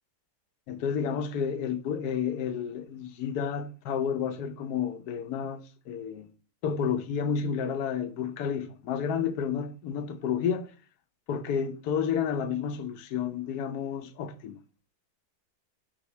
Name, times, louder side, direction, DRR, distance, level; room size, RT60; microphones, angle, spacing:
voice 1, 0.7-6.3 6.6-10.7 11.3-14.6, left 7 dB, 80° left, 1.3 m, -31 dB
6.3 x 5.1 x 3.2 m
omnidirectional pair, 1.7 m